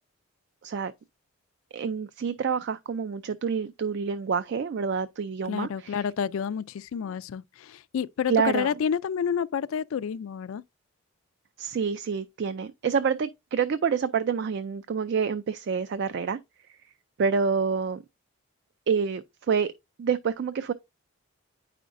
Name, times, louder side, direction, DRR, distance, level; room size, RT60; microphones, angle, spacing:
voice 1, 0.6-0.9 1.7-6.1 8.3-8.7 11.6-16.4 17.2-18.0 18.9-19.7 20.0-20.7, right 6 dB, 50° right, 0.3 m, -27 dB
voice 2, 5.4-10.6, left 7 dB, 70° left, 0.3 m, -29 dB
9.2 x 5.0 x 2.5 m
head